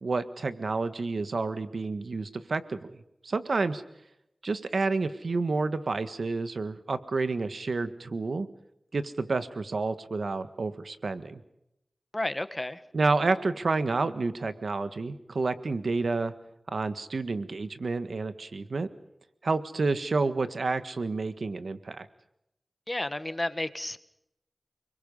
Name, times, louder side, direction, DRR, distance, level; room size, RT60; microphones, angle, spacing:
voice 1, 0.0-3.0 3.2-3.8 4.4-8.5 8.9-11.4 12.9-16.3 16.7-18.9 19.4-22.1, right 3 dB, 80° right, 11 dB, 1.6 m, -29 dB
voice 2, 12.1-12.8 22.9-24.0, left 1 dB, 25° left, 12 dB, 1.5 m, -32 dB
29.5 x 22.0 x 5.5 m, 0.82 s
wide cardioid pair, 55°, 0 cm